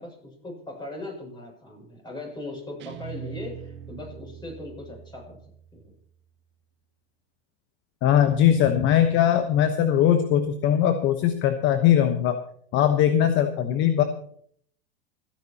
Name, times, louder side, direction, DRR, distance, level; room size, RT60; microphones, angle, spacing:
voice 1, 0.0-5.4 5.7-5.9, left 2 dB, 15° left, 0 dB, 7.1 m, -39 dB
Guitar, 2.8-6.0, right 9 dB, 40° right, 1.5 m, -42 dB
voice 2, 8.0-12.4 12.7-14.0, left 10 dB, 40° left, 9 dB, 1.1 m, -20 dB
27.0 x 10.0 x 2.9 m, 0.63 s
hypercardioid pair, 100°, 29 cm